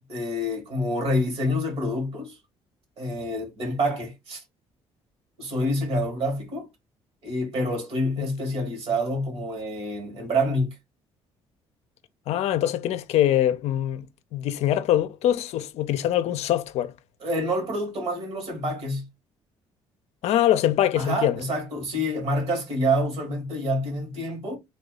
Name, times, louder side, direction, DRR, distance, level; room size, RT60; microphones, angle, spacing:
voice 1, 0.1-2.4 3.0-4.4 5.4-6.7 7.2-10.8 17.2-19.1 20.9-24.6, equal, 60° right, 2.3 m, -27 dB
voice 2, 12.3-14.1 14.3-16.9 20.2-21.4, left 12 dB, 70° left, 0.5 m, -23 dB
3.6 x 2.7 x 3.9 m
supercardioid pair, 80°, 11 cm